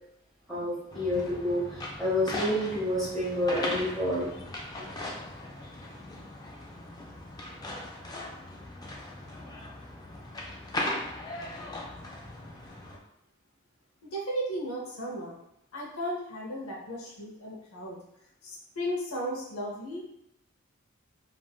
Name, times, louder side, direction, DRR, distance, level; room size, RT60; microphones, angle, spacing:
voice 1, 0.5-4.3 4.8-4.9, left 1 dB, ahead, -10 dB, 1.2 m, -29 dB
sound 1, 0.9-13.0, left 1 dB, 20° left, 0.3 m, -39 dB
voice 2, 14.0-15.4 15.7-18.0 18.4-20.0, equal, 75° left, -3 dB, 0.7 m, -35 dB
3.4 x 2.5 x 2.2 m, 0.82 s
head